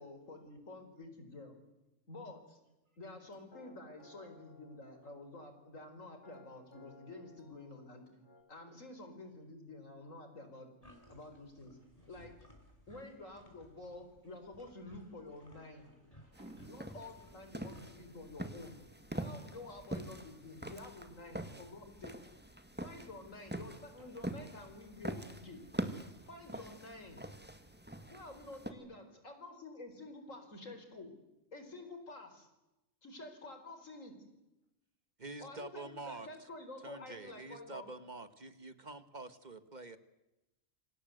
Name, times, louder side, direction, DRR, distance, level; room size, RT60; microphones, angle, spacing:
voice 1, 0.0-1.5 2.1-2.6 3.0-8.1 8.5-10.7 11.1-11.8 12.1-12.3 12.9-15.9 16.7-18.8 19.1-22.2 22.8-25.6 26.3-27.2 28.1-31.1 31.5-32.5 33.0-34.1 35.4-37.9, left 2 dB, 75° left, 7 dB, 5.0 m, -50 dB
sound 1, 3.1-8.4, left 2 dB, 60° left, 4.5 m, -61 dB
sound 2, 10.8-17.9, equal, 25° left, 5.3 m, -61 dB
voice 2, 11.8-12.1 13.2-13.4 15.3-17.3 18.4-18.5 19.1-19.3 20.7-20.8 24.0-24.1, right 2 dB, 80° right, 5 dB, 5.8 m, -69 dB
sound 3, 16.3-28.7, right 1 dB, 10° right, 1.9 m, -44 dB
voice 3, 35.2-36.5 36.8-40.0, right 2 dB, 35° right, 11 dB, 1.7 m, -47 dB
28.0 x 25.5 x 8.0 m, 0.97 s
omnidirectional pair, 1.4 m